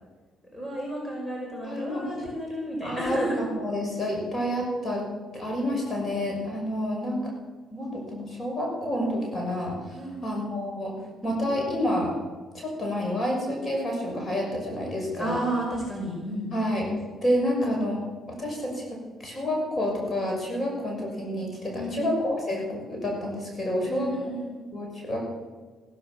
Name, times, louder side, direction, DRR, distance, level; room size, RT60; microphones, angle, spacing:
voice 1, 0.5-3.4 9.9-10.4 15.2-16.5 21.7-22.1 23.9-24.6, right 1 dB, 15° left, -2 dB, 5.1 m, -32 dB
voice 2, 1.6-2.0 2.8-5.0 5.3-7.2 7.7-11.0 11.2-12.1 12.5-15.4 16.5-16.9 17.2-18.0 18.3-24.1 24.7-25.3, left 1 dB, 35° left, 0 dB, 6.3 m, -29 dB
15.5 x 14.0 x 6.2 m, 1.4 s
cardioid pair, 90°, 0 cm